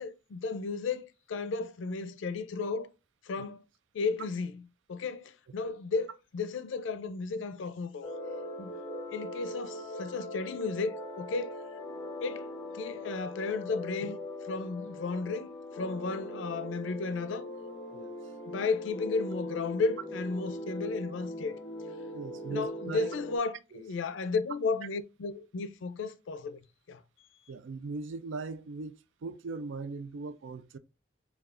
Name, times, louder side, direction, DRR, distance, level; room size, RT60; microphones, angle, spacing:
voice 1, 0.0-2.9 3.2-3.6 3.9-4.6 4.9-8.1 8.6-8.7 9.1-11.5 12.2-12.5 12.7-14.2 14.5-17.5 18.5-21.6 22.5-26.6 26.9-27.0, left 4 dB, 85° left, 0.4 m, -34 dB
sound 1, 8.0-23.4, left 1 dB, 15° left, 0.6 m, -41 dB
voice 2, 22.1-23.1 23.7-23.8 27.5-30.8, right 3 dB, 85° right, 0.4 m, -40 dB
4.7 x 2.3 x 2.4 m
head